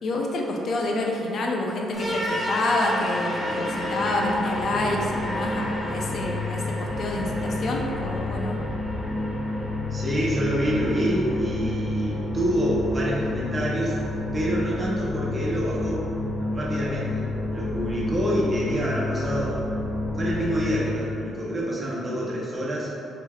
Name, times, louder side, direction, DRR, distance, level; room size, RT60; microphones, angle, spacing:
voice 1, 0.0-8.6, left 2 dB, 60° left, 0 dB, 0.5 m, -28 dB
sound 1, 1.9-20.9, left 2 dB, 25° left, 1.4 m, -29 dB
voice 2, 9.9-14.0 14.3-16.1 16.4-19.6 20.2-22.9, right 1 dB, 30° right, -5 dB, 0.8 m, -27 dB
4.7 x 3.1 x 2.3 m, 2.8 s
cardioid pair, 90°, 0 cm